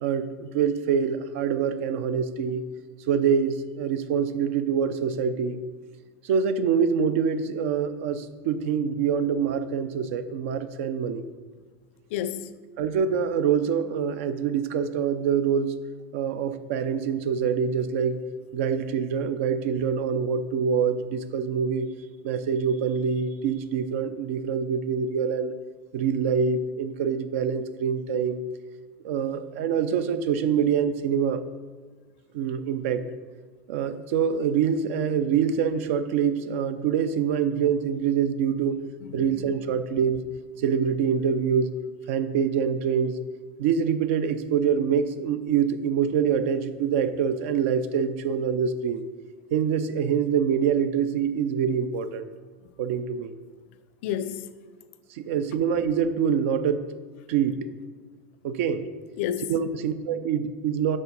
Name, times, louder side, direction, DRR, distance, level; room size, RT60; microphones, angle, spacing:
voice 1, 0.0-2.6 3.1-5.6 6.2-11.3 12.8-15.7 16.1-18.2 18.5-21.9 22.2-25.5 25.9-28.4 29.0-31.4 32.3-33.0 33.7-38.8 39.1-40.3 40.6-41.7 42.1-43.2 43.6-49.0 49.5-52.3 52.8-53.3 55.1-56.8 57.3-57.7 58.4-58.8 59.5-61.0, right 7 dB, 70° right, 0.5 m, -25 dB
voice 2, 12.1-12.5 39.0-39.8 54.0-54.5 59.2-59.6, left 10 dB, 65° left, 0.4 m, -31 dB
7.4 x 3.6 x 5.3 m
supercardioid pair, 150°, 7 cm